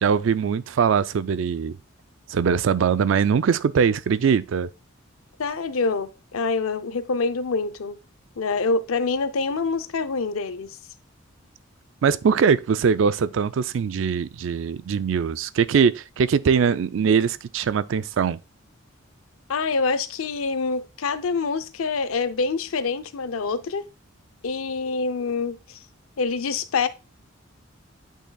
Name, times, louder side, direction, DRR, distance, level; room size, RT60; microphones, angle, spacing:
voice 1, 0.0-1.8 2.3-4.7 12.0-18.4, right 6 dB, 65° right, 0.3 m, -21 dB
voice 2, 5.4-8.0 8.4-10.8 19.5-23.9 24.4-25.8 26.2-26.9, left 4 dB, 85° left, 0.5 m, -26 dB
8.7 x 5.6 x 2.3 m
head